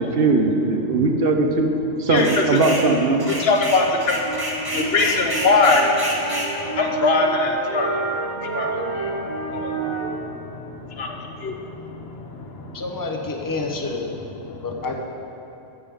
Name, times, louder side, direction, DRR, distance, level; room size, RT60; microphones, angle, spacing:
voice 1, 0.0-1.7 2.0-3.3, right 3 dB, 55° right, 4 dB, 0.9 m, -19 dB
sound 1, 2.2-2.9 3.2-6.5, right 1 dB, 20° right, 1.1 m, -29 dB
voice 2, 3.3-4.4 4.7-6.2 6.7-8.0 8.4-12.8 14.5-14.6, left 3 dB, 55° left, 3 dB, 1.1 m, -23 dB
sound 2, 4.2-10.1, right 3 dB, 35° right, 1.6 m, -29 dB
voice 3, 12.7-14.1 14.6-15.0, left 3 dB, 20° left, 2 dB, 0.7 m, -28 dB
13.5 x 8.6 x 3.7 m, 2.9 s
omnidirectional pair, 1.3 m